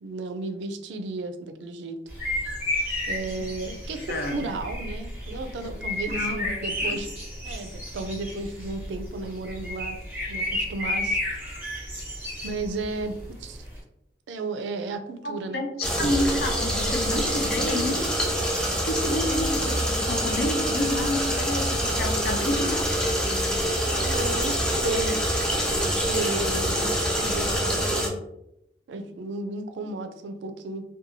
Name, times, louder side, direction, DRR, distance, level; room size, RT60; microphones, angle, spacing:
voice 1, 0.0-2.0 3.1-7.1 7.4-10.0 10.3-11.2 11.5-11.6 12.4-13.7 14.3-15.6 23.7-28.2 28.9-30.8, right 3 dB, 80° right, 8 dB, 0.4 m, -34 dB
sound 1, 2.1-13.8, left 1 dB, 10° right, 0.8 m, -32 dB
voice 2, 4.1-4.4 5.6-5.7 6.1-6.6 6.8-7.0 15.2-18.0 18.7-22.9, left 1 dB, 55° left, 4 dB, 0.5 m, -29 dB
sound 2, 15.8-28.1, equal, 5° left, 0.4 m, -25 dB
2.6 x 2.2 x 2.8 m, 0.82 s
head